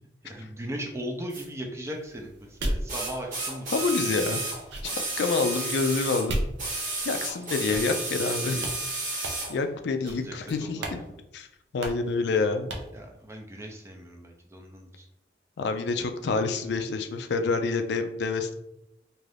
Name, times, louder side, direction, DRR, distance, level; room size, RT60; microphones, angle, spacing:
voice 1, 0.2-3.8 7.7-7.9 10.0-11.1 12.9-15.1, equal, 15° right, 2 dB, 0.4 m, -38 dB
sound 1, 1.3-1.4 2.9-6.3 6.6-9.5 10.5-10.6, right 2 dB, 45° right, 0.9 m, -32 dB
sound 2, 1.9-7.2 7.7-8.3 8.6-8.8 9.2-9.6 10.0-10.4 10.8-11.0 11.3-11.4 11.8-12.1 12.7-13.0, right 1 dB, 85° right, 0.6 m, -36 dB
voice 2, 3.7-4.5 4.8-4.9 5.2-6.4 7.1-8.7 9.5-10.8 11.3-11.5 11.7-12.7 15.6-18.5, left 4 dB, 75° left, 7 dB, 0.4 m, -27 dB
2.6 x 2.4 x 3.3 m, 0.84 s
head